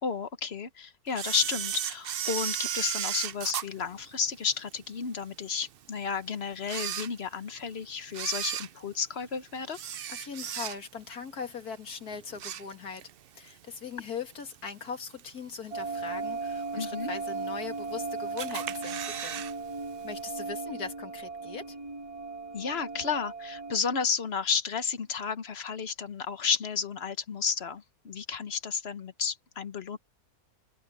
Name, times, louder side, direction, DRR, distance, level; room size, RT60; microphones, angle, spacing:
voice 1, 0.0-9.8 16.8-17.1 22.5-30.0, left 6 dB, 45° left, 1.2 m, -32 dB
Camera, 1.1-4.7 5.2-5.3 6.0-6.1 6.6-7.6 8.1-11.1 11.4-11.7 12.1-13.1 13.5-13.6 14.5-14.6 15.2-15.6 16.0-16.1 16.3-16.4 16.6-16.7 17.4-18.0 18.4-19.5 19.8-19.9 20.2-20.3, right 9 dB, 60° right, 0.6 m, -35 dB
voice 2, 10.1-13.0 13.4-19.4 20.0-21.8, left 5 dB, 75° left, 2.7 m, -40 dB
sound 1, 15.7-23.8, right 4 dB, 20° right, 1.6 m, -37 dB
omnidirectional pair, 1.6 m